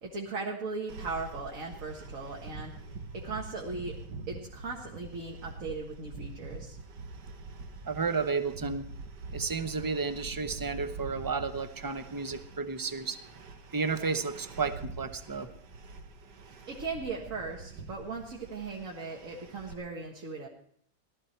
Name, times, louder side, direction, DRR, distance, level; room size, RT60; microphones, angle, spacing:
voice 1, 0.0-2.7 3.1-4.0 4.3-6.8 16.7-20.5, right 4 dB, 55° right, -1 dB, 2.1 m, -38 dB
sound 1, 0.9-19.7, right 3 dB, 85° right, 1.9 m, -45 dB
voice 2, 7.8-8.8 9.3-13.2 13.7-15.5, right 4 dB, 20° right, 9 dB, 0.5 m, -32 dB
18.0 x 13.0 x 4.5 m, 0.63 s
omnidirectional pair, 1.8 m